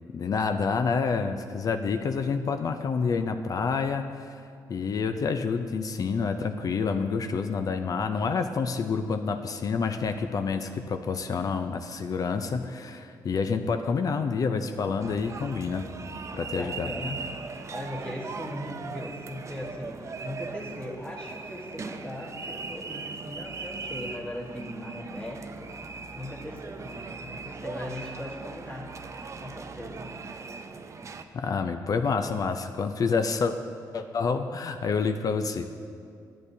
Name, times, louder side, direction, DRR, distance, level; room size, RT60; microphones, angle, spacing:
voice 1, 0.1-4.4 4.7-15.9 16.3-16.9 31.3-33.5 33.9-35.7, left 5 dB, 50° left, 7 dB, 0.4 m, -28 dB
sound 1, 15.0-31.2, right 4 dB, 40° right, 0.5 m, -39 dB
voice 2, 16.5-28.9 29.4-30.1, left 1 dB, 15° left, -5 dB, 1.3 m, -39 dB
10.5 x 8.3 x 2.7 m, 2.3 s
cardioid pair, 70°, 8 cm